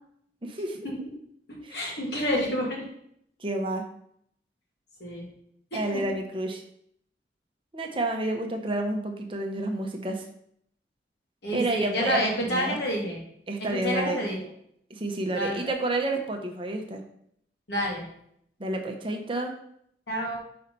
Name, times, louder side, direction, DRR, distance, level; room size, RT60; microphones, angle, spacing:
voice 1, 0.4-0.8 1.6-1.8 3.4-3.8 5.7-6.6 7.7-10.2 11.5-12.2 12.5-12.8 13.5-14.2 14.9-17.0 18.6-19.5, right 2 dB, 30° right, 4 dB, 0.8 m, -29 dB
voice 2, 1.5-2.9 5.0-5.3 5.7-6.0 11.4-13.2 13.6-14.5 15.3-15.6 17.7-18.1 20.1-20.4, equal, 70° left, -2 dB, 2.0 m, -29 dB
5.5 x 4.3 x 5.3 m, 0.70 s
head